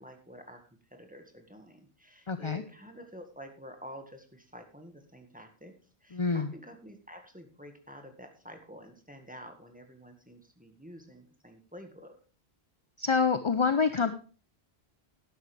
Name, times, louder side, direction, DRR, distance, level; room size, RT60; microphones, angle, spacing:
voice 1, 0.0-12.2, equal, 10° right, 5 dB, 1.7 m, -49 dB
voice 2, 2.3-2.6 6.1-6.5 13.0-14.1, left 5 dB, 35° left, 10 dB, 0.6 m, -27 dB
13.0 x 10.5 x 3.4 m, 0.35 s
omnidirectional pair, 1.1 m